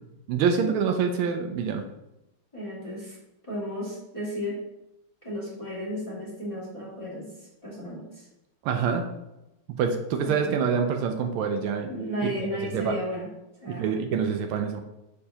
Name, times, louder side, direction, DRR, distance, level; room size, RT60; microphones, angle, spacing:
voice 1, 0.3-1.8 8.6-9.1 9.8-11.9 12.4-12.9 13.7-14.8, right 6 dB, 80° right, 5 dB, 1.4 m, -26 dB
voice 2, 2.5-3.2 3.4-4.6 5.2-8.3 10.2-10.5 11.9-13.3 13.6-14.0, equal, 15° left, -8 dB, 2.1 m, -34 dB
6.7 x 5.5 x 2.8 m, 0.92 s
omnidirectional pair, 2.4 m